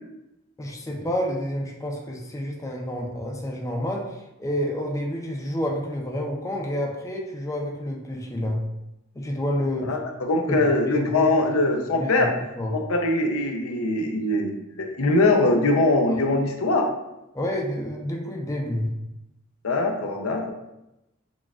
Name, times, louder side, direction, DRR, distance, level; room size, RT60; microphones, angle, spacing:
voice 1, 0.6-8.6 9.1-9.9 10.5-10.6 10.9-11.5 11.9-12.3 12.6-12.8 17.3-18.9, equal, 15° left, -1 dB, 0.5 m, -29 dB
voice 2, 9.9-12.3 12.7-16.9 19.6-20.5, left 2 dB, 80° left, 3 dB, 0.5 m, -22 dB
6.1 x 2.3 x 2.3 m, 0.92 s
head